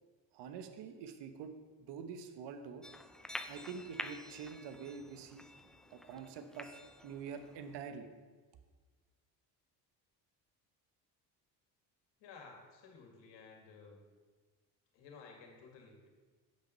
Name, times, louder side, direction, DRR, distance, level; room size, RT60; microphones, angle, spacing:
voice 1, 0.3-1.5 1.8-2.9 3.5-5.5 5.9-8.1, right 6 dB, 75° right, 9 dB, 0.9 m, -46 dB
sound 1, 2.8-7.8, left 1 dB, ahead, 0.3 m, -48 dB
voice 2, 12.2-14.0 14.9-16.1, left 4 dB, 80° left, 1 dB, 2.0 m, -55 dB
8.6 x 6.0 x 5.5 m, 1.4 s
cardioid pair, 105°, 42 cm